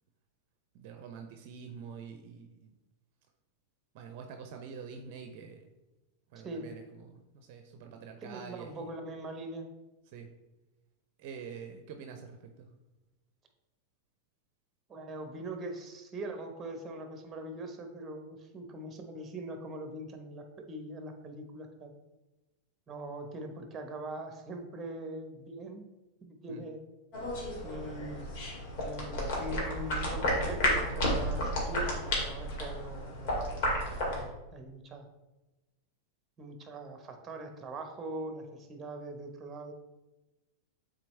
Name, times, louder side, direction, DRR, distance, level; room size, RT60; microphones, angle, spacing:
voice 1, 0.7-2.7 3.9-5.7 6.3-8.9 10.1-10.3 11.2-12.7 26.5-26.6, right 6 dB, 55° right, 5 dB, 0.6 m, -46 dB
voice 2, 8.2-9.7 14.9-21.9 22.9-25.9 26.2-26.8 27.6-28.3 28.8-33.7 34.1-35.1 36.4-39.7, right 1 dB, 25° right, 5 dB, 1.0 m, -42 dB
sound 1, 27.1-34.2, equal, 60° left, 2.1 m, -32 dB
7.5 x 3.9 x 3.3 m, 1.0 s
hypercardioid pair, 105°, 0 cm